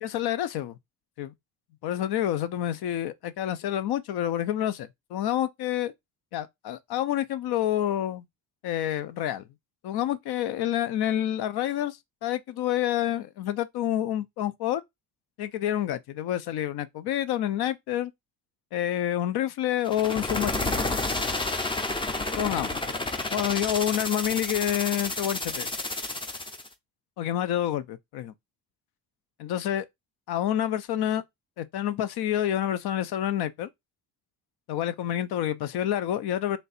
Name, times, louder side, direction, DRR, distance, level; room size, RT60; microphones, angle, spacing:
voice 1, 0.0-0.8 1.2-1.3 1.8-5.9 6.3-8.2 8.6-9.4 9.8-14.8 15.4-18.1 18.7-20.8 22.3-22.8 23.3-25.7 27.2-28.3 29.4-29.8 30.3-31.2 31.6-33.7 34.7-36.6, left 11 dB, 80° left, 0.6 m, -28 dB
sound 1, 19.8-26.7, left 2 dB, 15° left, 0.5 m, -30 dB
3.3 x 2.6 x 4.0 m
cardioid pair, 145°, 38 cm